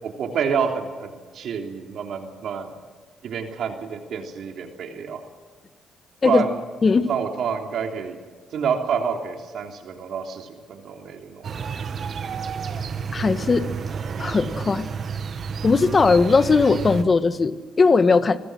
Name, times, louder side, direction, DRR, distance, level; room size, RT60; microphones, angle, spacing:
voice 1, 0.0-2.7 3.2-5.2 6.2-6.6 7.1-8.2 8.5-11.5, right 6 dB, 70° right, 3 dB, 3.3 m, -28 dB
sound 1, 11.4-17.0, right 6 dB, 50° right, 1.9 m, -30 dB
voice 2, 13.1-13.6 14.2-14.9 15.6-18.4, left 4 dB, 35° left, 11 dB, 1.5 m, -18 dB
26.5 x 21.5 x 6.3 m, 1.4 s
cardioid pair, 90°, 0 cm